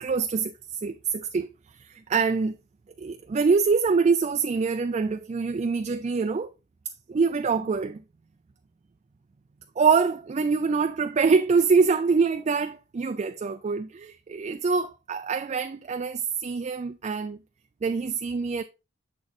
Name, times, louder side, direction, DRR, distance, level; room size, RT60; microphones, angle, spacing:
voice 1, 0.0-1.5 1.8-2.6 3.0-6.5 7.1-8.0 9.8-17.4 17.8-18.6, right 5 dB, 35° right, 0.3 m, -25 dB
7.2 x 6.4 x 2.5 m
head